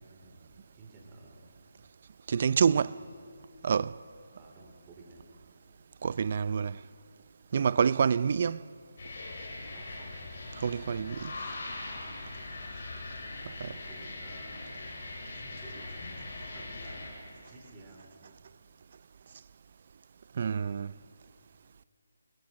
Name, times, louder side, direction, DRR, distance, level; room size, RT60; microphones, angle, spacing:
voice 1, 0.0-1.5 2.6-3.1 4.4-5.4 9.7-10.1 12.4-12.6 13.4-14.8 15.4-16.1 16.5-18.3, right 2 dB, 20° right, 3.6 m, -53 dB
voice 2, 2.3-2.9 3.6-3.9 6.0-6.8 7.5-8.7 10.6-11.3 13.6-13.7 20.4-20.9, right 6 dB, 45° right, 0.4 m, -27 dB
sound 1, 9.0-17.1, left 2 dB, 50° left, 7.8 m, -41 dB
28.0 x 21.5 x 6.4 m
hypercardioid pair, 165°, 0 cm